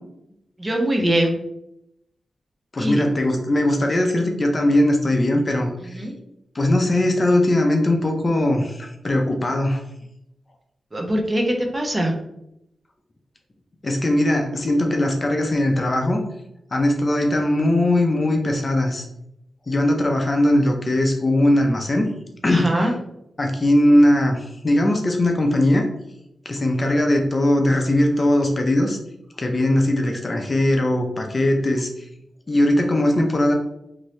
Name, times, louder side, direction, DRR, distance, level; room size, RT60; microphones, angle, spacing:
voice 1, 0.6-1.3 2.8-3.0 5.9-6.1 10.9-12.1 22.5-22.9, right 1 dB, 20° right, 1 dB, 0.6 m, -22 dB
voice 2, 2.7-6.1 6.5-9.8 13.8-16.2 16.7-19.1 19.7-22.1 22.4-22.9 23.4-25.9 26.4-29.0 29.4-31.9 32.5-33.5, left 1 dB, 35° left, 2 dB, 0.5 m, -20 dB
2.8 x 2.6 x 3.1 m, 0.81 s
wide cardioid pair, 95°, 0 cm